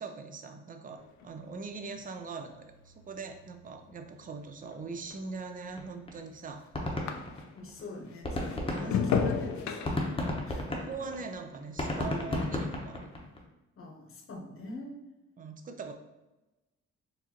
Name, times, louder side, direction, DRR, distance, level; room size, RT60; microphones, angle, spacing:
voice 1, 0.0-6.6 8.7-9.0 10.7-13.2 15.4-15.9, right 4 dB, 30° right, 6 dB, 0.5 m, -41 dB
sound 1, 1.0-7.7 8.1-12.6 12.9-13.4, left 6 dB, 65° left, 0.5 m, -37 dB
sound 2, 5.8-5.9 6.1-6.2 6.5-7.8 8.1-13.4, left 1 dB, 20° left, 0.8 m, -33 dB
voice 2, 7.0-10.7 13.8-15.0, left 2 dB, 45° left, 1 dB, 0.9 m, -45 dB
4.7 x 2.6 x 2.9 m, 1.0 s
cardioid pair, 90°, 30 cm